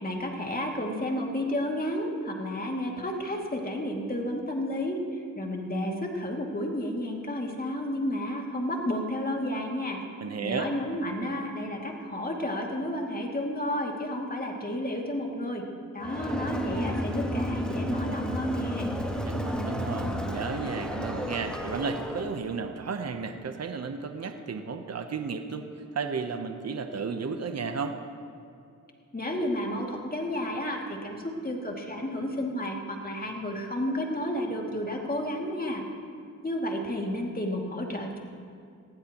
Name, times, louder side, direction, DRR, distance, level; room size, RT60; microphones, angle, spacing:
voice 1, 0.0-10.0 10.4-15.6 15.9-18.9 29.1-35.8 36.4-38.2, left 1 dB, 25° left, 0 dB, 2.4 m, -31 dB
voice 2, 10.2-10.7 19.2-28.0, right 5 dB, 50° right, 7 dB, 0.9 m, -33 dB
Crowd, 16.0-22.3, equal, 5° left, 1.6 m, -32 dB
19.5 x 15.5 x 3.0 m, 2.4 s
cardioid pair, 70°, 32 cm